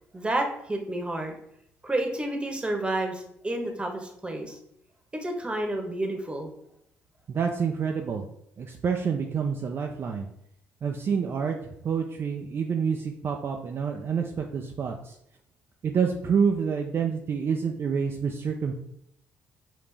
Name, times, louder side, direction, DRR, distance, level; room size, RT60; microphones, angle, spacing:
voice 1, 0.1-1.3 1.8-4.6 5.1-6.5, right 1 dB, 20° right, 3 dB, 1.1 m, -30 dB
voice 2, 7.3-8.3 8.6-10.3 10.8-15.2 15.8-18.7, right 6 dB, 45° right, 2 dB, 0.5 m, -28 dB
5.1 x 2.8 x 3.3 m, 0.74 s
supercardioid pair, 70°, 5 cm